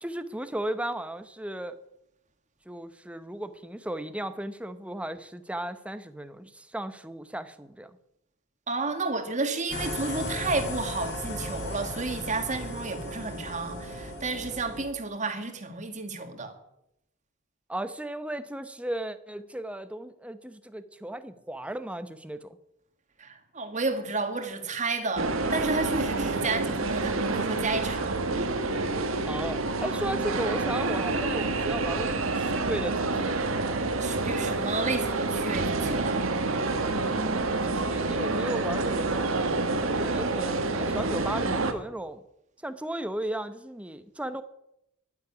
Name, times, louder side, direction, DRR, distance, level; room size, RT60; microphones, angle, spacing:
voice 1, 0.0-1.7 2.7-7.9 17.7-22.6 29.3-33.4 37.1-39.4 39.8-42.2 42.6-44.4, right 1 dB, 5° right, 0.8 m, -35 dB
voice 2, 8.7-16.5 23.2-28.2 34.0-36.2, right 3 dB, 35° right, 1.9 m, -31 dB
sound 1, 9.7-14.8, left 1 dB, 60° left, 4.7 m, -36 dB
sound 2, 25.2-41.7, right 3 dB, 85° right, 1.6 m, -28 dB
11.0 x 10.0 x 9.7 m
head